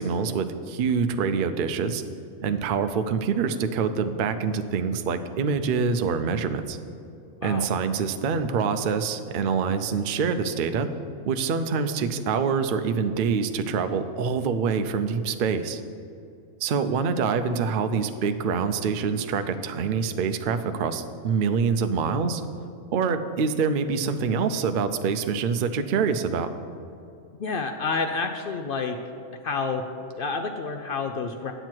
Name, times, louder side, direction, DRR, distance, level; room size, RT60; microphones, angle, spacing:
voice 1, 0.0-2.0 2.4-6.8 7.4-10.9 11.3-15.8 16.6-22.4 22.9-26.5, right 5 dB, 65° right, 9 dB, 0.5 m, -25 dB
voice 2, 27.4-29.0 29.4-29.9 30.2-31.5, left 4 dB, 70° left, 5 dB, 0.5 m, -29 dB
9.0 x 7.7 x 4.5 m, 2.7 s
omnidirectional pair, 1.4 m